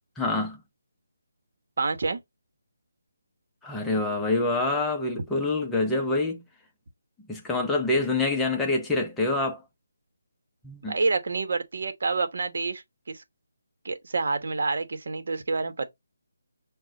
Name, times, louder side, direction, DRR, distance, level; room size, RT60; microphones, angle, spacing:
voice 1, 0.2-0.6 3.6-6.4 7.3-9.6 10.6-10.9, left 2 dB, 5° left, 0.6 m, -26 dB
voice 2, 1.8-2.2 10.9-13.2 13.8-15.9, right 3 dB, 60° right, 1.0 m, -28 dB
5.9 x 2.2 x 3.9 m
figure-of-eight pair, 165°, 0 cm